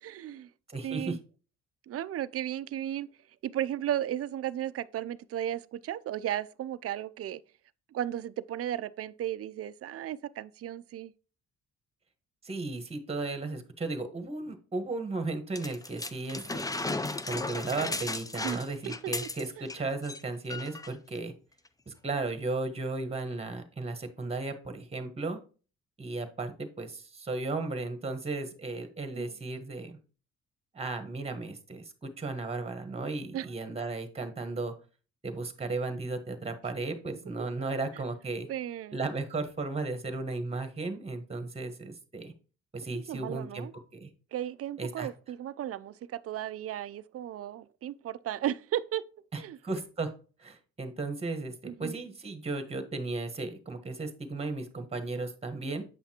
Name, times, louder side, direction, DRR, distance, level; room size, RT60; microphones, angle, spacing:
voice 1, 0.0-0.5 0.8-1.2 1.9-3.1 3.4-7.4 7.9-11.1 18.4-18.6 19.0-19.1 19.6-19.7 29.1-29.4 33.3-33.5 37.9-38.0 38.5-39.0 43.1-43.7 44.3-49.0 49.4-49.6 51.6-52.0, right 11 dB, 50° right, 0.5 m, -35 dB
voice 2, 0.7-1.2 12.4-16.7 17.3-21.3 21.9-25.4 26.0-30.0 30.7-34.7 35.2-38.5 38.9-42.3 42.7-44.1 44.8-45.1 49.3-50.1 50.4-55.8, right 3 dB, 20° right, 1.3 m, -35 dB
sound 1, 15.6-19.8 20.0-20.2 20.5-20.9 21.7-21.8, left 2 dB, 10° left, 0.5 m, -35 dB
8.3 x 5.7 x 2.9 m
cardioid pair, 90°, 30 cm